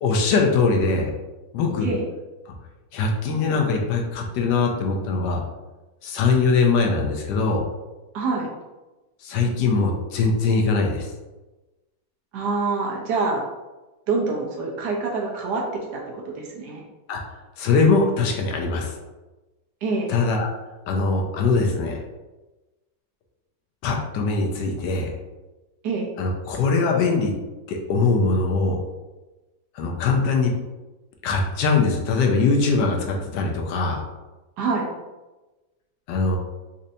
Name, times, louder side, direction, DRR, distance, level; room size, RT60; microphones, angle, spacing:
voice 1, 0.0-1.1 1.5-1.9 2.5-2.6 2.9-5.4 6.0-7.6 9.2-11.1 17.1-17.2 17.6-18.9 20.1-20.5 20.9-22.0 23.8-25.1 26.2-27.3 27.7-28.8 29.7-30.5 31.2-34.0 36.1-36.4, left 4 dB, 80° left, 1 dB, 1.2 m, -21 dB
voice 2, 8.1-8.5 12.3-13.4 14.1-16.8 19.8-20.2 25.8-26.1 34.6-34.9, right 3 dB, 75° right, -1 dB, 1.3 m, -26 dB
4.2 x 2.6 x 2.6 m, 1.1 s
omnidirectional pair, 1.9 m